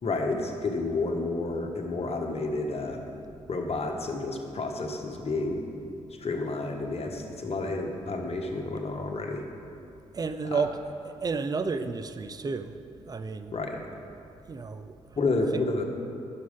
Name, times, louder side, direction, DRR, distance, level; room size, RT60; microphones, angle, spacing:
voice 1, 0.0-3.0 3.5-5.6 6.2-9.4 10.5-10.6 13.5-13.8 15.2-15.8, left 3 dB, 45° left, 3 dB, 1.2 m, -30 dB
voice 2, 10.1-10.8 11.0-12.7 13.1-13.5 14.5-15.0, right 4 dB, 25° right, 10 dB, 0.5 m, -31 dB
11.0 x 6.2 x 3.6 m, 2.6 s
hypercardioid pair, 45°, 14 cm